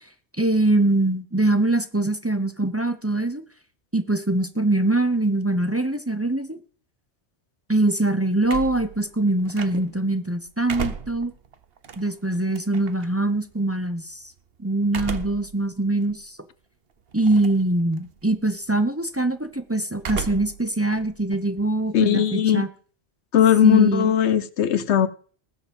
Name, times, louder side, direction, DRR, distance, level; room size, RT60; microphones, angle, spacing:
voice 1, 0.4-3.4 3.9-6.6 7.7-11.3 12.0-14.2 14.6-16.3 17.1-22.7 23.6-24.1, right 2 dB, 15° right, 0.9 m, -23 dB
sound 1, 8.4-10.1 10.5-13.1 14.9-15.5 16.0-16.1 17.2-17.7 18.0-18.4 20.0-20.6 20.9-22.3, right 6 dB, 60° right, 1.2 m, -34 dB
voice 2, 21.9-22.6 23.3-25.1, left 9 dB, 85° left, 1.1 m, -18 dB
19.5 x 7.0 x 5.4 m
omnidirectional pair, 1.1 m